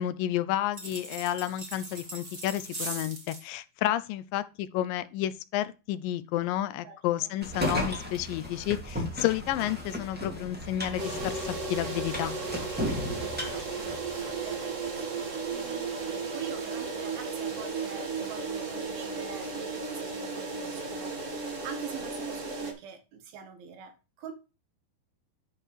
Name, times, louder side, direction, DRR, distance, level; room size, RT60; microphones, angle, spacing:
voice 1, 0.0-12.4, left 13 dB, 80° left, 2.2 m, -31 dB
sound 1, 0.7-3.5, right 2 dB, 25° right, 1.5 m, -40 dB
voice 2, 6.8-7.3 13.2-24.3, right 7 dB, 90° right, 3.4 m, -46 dB
sound 2, 7.4-14.6, left 1 dB, 5° right, 1.4 m, -35 dB
sound 3, 11.0-22.7, right 4 dB, 45° right, 0.9 m, -34 dB
11.0 x 5.4 x 3.2 m
omnidirectional pair, 4.1 m